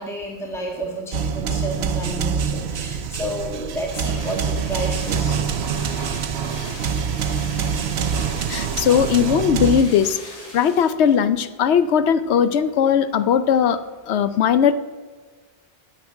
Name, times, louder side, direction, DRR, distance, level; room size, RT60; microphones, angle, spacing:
voice 1, 0.0-5.5, right 1 dB, ahead, -1 dB, 1.7 m, -31 dB
sound 1, 1.1-9.8, right 7 dB, 75° right, 1.0 m, -25 dB
sound 2, 3.7-11.2 11.6-11.7, left 1 dB, 35° left, 2.3 m, -40 dB
voice 2, 8.5-10.2 10.5-13.8 14.1-14.7, left 8 dB, 90° left, 13 dB, 0.9 m, -18 dB
9.3 x 7.2 x 8.9 m, 1.4 s
omnidirectional pair, 1.1 m